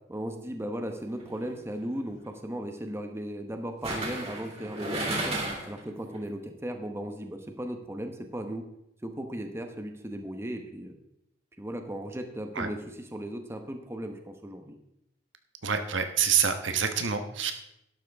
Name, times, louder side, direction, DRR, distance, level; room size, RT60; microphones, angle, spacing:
voice 1, 0.1-5.4 5.7-8.6 9.0-11.0 11.6-14.8, right 1 dB, 15° right, 5 dB, 1.0 m, -36 dB
sound 1, 1.2-1.5 3.8-5.8 6.1-6.2, right 1 dB, 35° right, 3.1 m, -33 dB
voice 2, 15.6-17.5, right 7 dB, 70° right, 7 dB, 1.1 m, -27 dB
12.0 x 12.0 x 3.5 m, 0.80 s
head